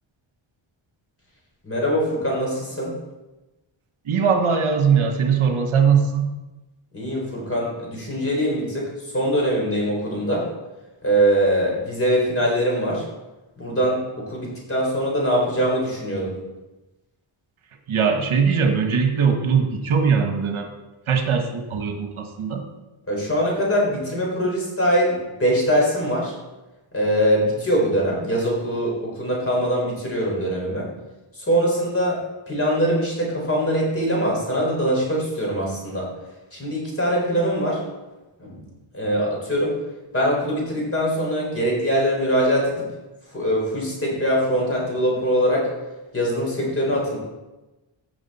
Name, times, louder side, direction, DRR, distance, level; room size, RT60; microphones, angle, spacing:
voice 1, 1.6-2.9 6.9-10.5 11.0-13.0 13.6-16.3 23.1-25.1 25.4-26.3 26.9-30.9 31.3-32.2 32.5-36.1 36.5-37.8 38.4-38.6 38.9-39.7 40.1-42.9 43.3-45.7 46.1-47.2, equal, 25° left, -3 dB, 4.0 m, -22 dB
voice 2, 4.0-6.3 17.9-20.7 21.1-22.6, right 6 dB, 80° right, 4 dB, 1.5 m, -20 dB
15.5 x 6.1 x 4.3 m, 1.1 s
wide cardioid pair, 135°, 49 cm